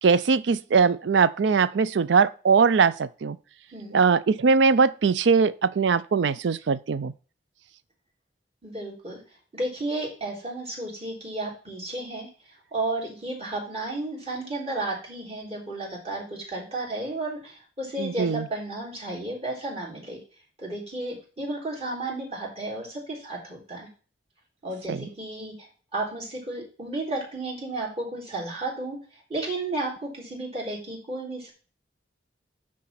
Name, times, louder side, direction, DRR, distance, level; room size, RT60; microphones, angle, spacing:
voice 1, 0.0-3.4 3.9-7.1 18.0-18.5 24.9-25.0, right 5 dB, 80° right, 0.4 m, -21 dB
voice 2, 8.6-9.2 9.5-12.3 12.7-20.2 20.6-23.9 24.6-31.5, right 2 dB, 35° right, 3.6 m, -33 dB
10.0 x 3.7 x 5.8 m
head